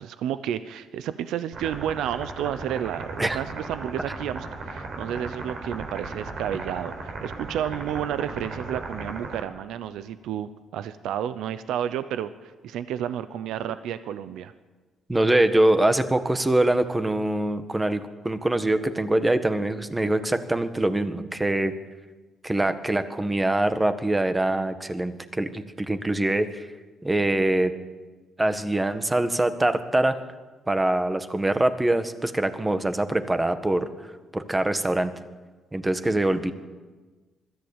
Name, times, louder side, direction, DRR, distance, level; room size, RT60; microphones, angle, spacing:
voice 1, 0.0-14.5, right 10 dB, 85° right, 13 dB, 0.8 m, -31 dB
sound 1, 1.5-9.4, right 3 dB, 60° right, 4.4 m, -36 dB
voice 2, 15.1-21.7 22.4-26.7 27.0-27.7 28.4-30.1 30.7-33.9 34.3-35.1 35.7-36.5, right 1 dB, 15° right, 9 dB, 1.6 m, -24 dB
21.5 x 13.5 x 8.9 m, 1.3 s
cardioid pair, 90°, 0 cm